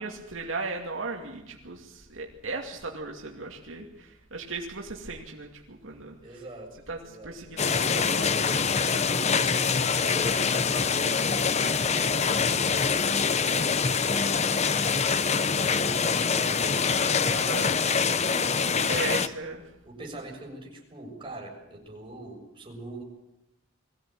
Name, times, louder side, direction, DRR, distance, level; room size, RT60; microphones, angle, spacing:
voice 1, 0.0-6.2 6.9-7.0 7.2-9.1 17.3-17.8 18.9-19.6, right 3 dB, 75° right, 0 dB, 2.5 m, -37 dB
voice 2, 6.2-7.4 9.9-11.0 11.5-18.9 19.8-23.0, right 2 dB, 25° right, -1 dB, 6.7 m, -43 dB
sound 1, 7.6-19.3, left 5 dB, 35° left, 0.8 m, -25 dB
22.5 x 16.0 x 9.0 m, 0.91 s
head